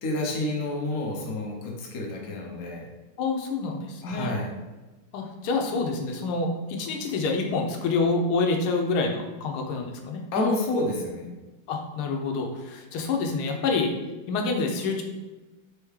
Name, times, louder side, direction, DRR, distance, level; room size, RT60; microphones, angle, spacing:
voice 1, 0.0-2.9 4.0-4.5 10.3-11.3, left 2 dB, 55° left, -1 dB, 1.0 m, -29 dB
voice 2, 3.2-4.3 5.1-10.2 11.7-13.9 14.3-15.0, left 3 dB, 90° left, 2 dB, 1.5 m, -27 dB
4.5 x 3.5 x 3.1 m, 1.1 s
omnidirectional pair, 2.4 m